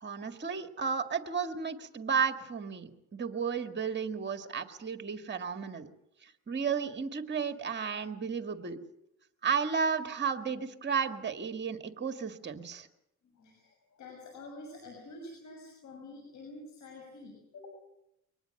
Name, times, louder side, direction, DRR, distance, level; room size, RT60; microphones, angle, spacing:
voice 1, 0.0-5.9 6.2-8.8 9.4-12.9, right 6 dB, 35° right, 8 dB, 1.9 m, -33 dB
voice 2, 13.4-17.7, left 2 dB, 70° left, 2 dB, 6.7 m, -48 dB
23.5 x 19.5 x 7.8 m, 0.80 s
cardioid pair, 90°, 30 cm